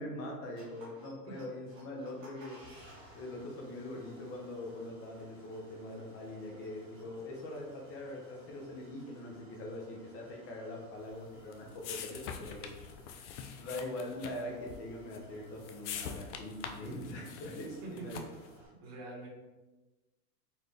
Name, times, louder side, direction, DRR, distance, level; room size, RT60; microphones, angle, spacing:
voice 1, 0.0-2.6 3.1-12.7 13.6-18.3, left 1 dB, 25° left, -1 dB, 0.8 m, -42 dB
sound 1, 0.6-18.7, equal, 10° right, 0.3 m, -59 dB
sound 2, 11.1-18.5, left 7 dB, 50° left, 0.4 m, -45 dB
voice 2, 17.8-18.2 18.8-19.3, right 3 dB, 35° right, -6 dB, 1.4 m, -44 dB
4.2 x 2.5 x 3.4 m, 1.2 s
hypercardioid pair, 135°, 49 cm